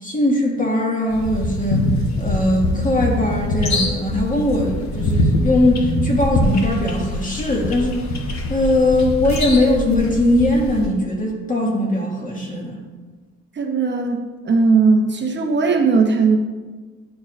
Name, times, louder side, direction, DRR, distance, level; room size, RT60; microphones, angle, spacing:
voice 1, 0.0-1.8 2.2-8.0 8.3-12.8, left 1 dB, 25° left, -2 dB, 1.8 m, -20 dB
sound 1, 1.1-10.9, left 1 dB, 65° left, 1.0 m, -23 dB
voice 2, 13.6-16.4, right 4 dB, 35° right, 3 dB, 0.9 m, -18 dB
11.0 x 4.6 x 2.5 m, 1.3 s
cardioid pair, 90°, 30 cm